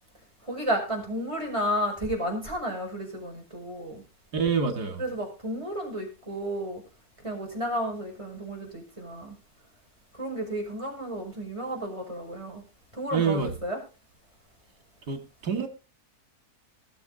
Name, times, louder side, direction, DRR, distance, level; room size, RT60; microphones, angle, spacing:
voice 1, 0.4-4.0 5.0-6.8 7.2-9.3 10.2-12.6 12.9-13.8, equal, 20° right, 5.7 m, -32 dB
voice 2, 4.3-5.0 13.1-13.5 15.1-15.7, right 5 dB, 85° right, 2.6 m, -27 dB
19.5 x 7.5 x 4.0 m
omnidirectional pair, 1.7 m